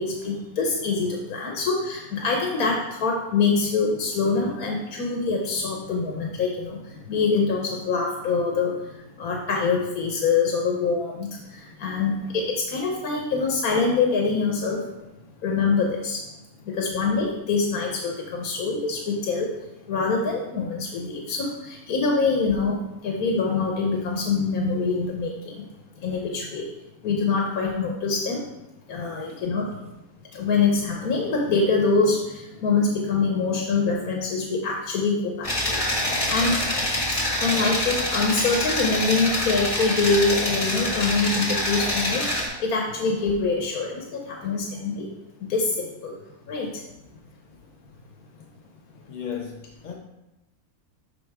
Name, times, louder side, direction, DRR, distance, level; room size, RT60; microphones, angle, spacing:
voice 1, 0.0-14.8 15.4-16.2 16.6-19.5 19.9-25.6 26.0-26.7 27.0-28.5 28.9-29.8 30.3-36.6 37.4-45.1 45.4-46.2 46.5-46.8, left 4 dB, 80° left, 0 dB, 1.4 m, -25 dB
sound 1, 35.4-42.5, left 1 dB, 25° left, 1.3 m, -26 dB
voice 2, 49.1-49.9, left 8 dB, 55° left, 2 dB, 0.5 m, -35 dB
12.0 x 4.3 x 3.5 m, 0.95 s
omnidirectional pair, 1.6 m